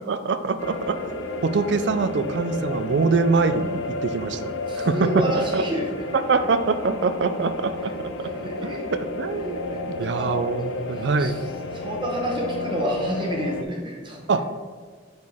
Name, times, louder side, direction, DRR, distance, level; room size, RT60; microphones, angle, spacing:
voice 1, 0.1-1.0 1.4-5.2 5.5-5.6 6.3-8.3 8.6-11.4 14.3-14.4, right 4 dB, 60° right, 11 dB, 0.4 m, -24 dB
sound 1, 0.6-13.6, left 2 dB, 75° left, 0.5 m, -32 dB
voice 2, 4.7-6.1 8.2-8.8 9.7-9.8 10.1-10.3 11.0-11.3 11.7-14.3, right 1 dB, 25° right, -1 dB, 0.9 m, -29 dB
6.1 x 5.2 x 3.5 m, 1.5 s
head